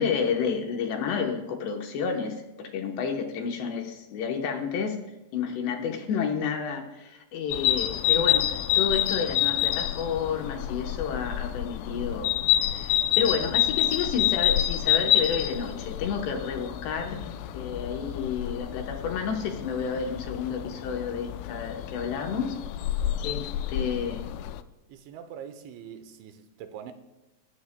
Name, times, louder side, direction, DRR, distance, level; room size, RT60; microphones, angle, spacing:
voice 1, 0.0-5.0 5.3-12.4 12.7-22.6 23.2-24.3, left 6 dB, 75° left, 2.8 m, -30 dB
sound 1, 7.5-24.6, left 13 dB, 90° left, 3.3 m, -28 dB
voice 2, 24.9-26.9, right 8 dB, 80° right, 2.9 m, -43 dB
20.5 x 16.0 x 2.2 m
omnidirectional pair, 5.7 m